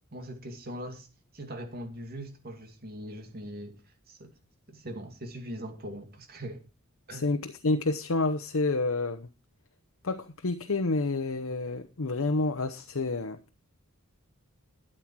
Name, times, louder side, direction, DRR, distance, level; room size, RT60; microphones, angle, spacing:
voice 1, 0.1-1.1 1.3-4.3 4.7-6.6 7.1-7.3, equal, 45° right, 2.5 m, -41 dB
voice 2, 7.1-9.3 10.0-13.4, left 3 dB, 75° left, 0.9 m, -29 dB
12.5 x 8.9 x 4.6 m
head